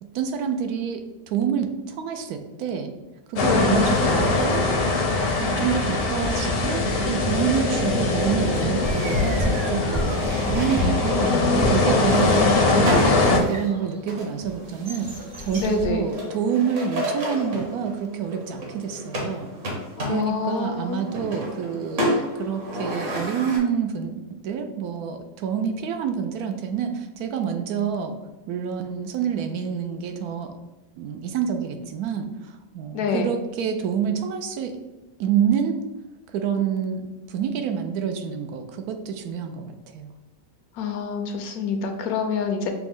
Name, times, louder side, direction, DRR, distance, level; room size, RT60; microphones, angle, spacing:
voice 1, 0.0-2.9 3.3-4.6 5.4-15.1 15.4-19.5 20.1-28.2 28.5-30.6 31.0-34.8 35.2-35.8 36.3-40.1, right 7 dB, 80° right, 6 dB, 1.1 m, -27 dB
voice 2, 3.4-3.8 11.1-11.9 15.5-16.1 20.0-21.1 32.9-33.3 40.8-42.7, left 5 dB, 80° left, 5 dB, 1.1 m, -27 dB
sound 1, 3.4-13.4, left 3 dB, 55° left, 0.7 m, -22 dB
sound 2, 8.5-13.9 14.4-16.0, left 1 dB, 30° right, 0.6 m, -31 dB
sound 3, 8.8-23.6, equal, 60° right, 1.3 m, -32 dB
5.8 x 2.1 x 3.5 m, 1.1 s
omnidirectional pair, 1.6 m